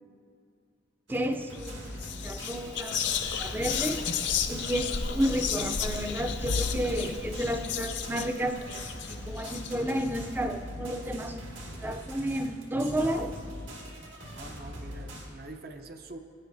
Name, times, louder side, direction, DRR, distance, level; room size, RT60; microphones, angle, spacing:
voice 1, 1.1-3.0 3.4-4.0 4.5-8.8 9.1-11.4 11.8-13.3, equal, 10° right, 6 dB, 0.4 m, -31 dB
sound 1, 1.1-15.3, equal, 70° right, 2.1 m, -42 dB
Whispering, 1.5-1.7 2.0-10.1, left 6 dB, 60° left, 0.6 m, -33 dB
voice 2, 14.3-16.2, right 2 dB, 50° right, 6 dB, 0.6 m, -45 dB
19.5 x 9.3 x 2.7 m, 2.3 s
head